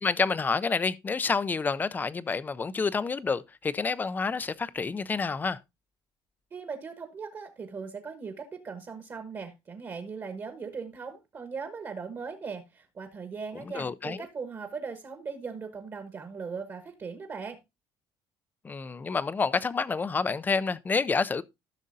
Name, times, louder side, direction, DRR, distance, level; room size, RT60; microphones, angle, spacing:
voice 1, 0.0-5.6 13.7-14.2 18.6-21.4, left 4 dB, 20° left, 0.4 m, -28 dB
voice 2, 6.5-17.6, right 5 dB, 30° right, 1.2 m, -39 dB
14.5 x 6.4 x 2.7 m
cardioid pair, 155°, 10 cm